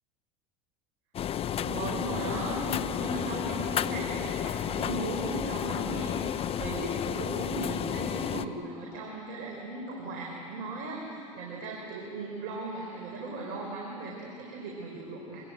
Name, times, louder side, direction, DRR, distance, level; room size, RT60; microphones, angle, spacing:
condenser clothes dryer, 1.1-8.5, left 9 dB, 35° left, 0.7 m, -32 dB
voice 1, 1.6-15.4, right 2 dB, 60° right, -1 dB, 4.8 m, -37 dB
25.0 x 21.0 x 8.9 m, 2.8 s
hypercardioid pair, 90°, 17 cm